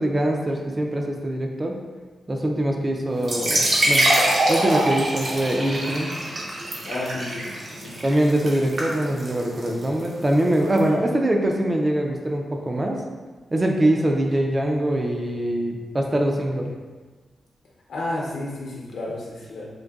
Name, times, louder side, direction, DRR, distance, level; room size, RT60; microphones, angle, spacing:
voice 1, 0.0-1.8 2.3-4.1 4.5-6.1 8.0-13.0 13.5-16.8, right 1 dB, 20° right, 1 dB, 0.3 m, -23 dB
sound 1, 3.2-10.8, right 1 dB, 55° right, 0.6 m, -24 dB
voice 2, 6.9-7.4 7.8-7.9 17.9-19.7, left 2 dB, 85° left, -3 dB, 0.7 m, -31 dB
3.8 x 2.6 x 2.3 m, 1.3 s
wide cardioid pair, 145°, 0 cm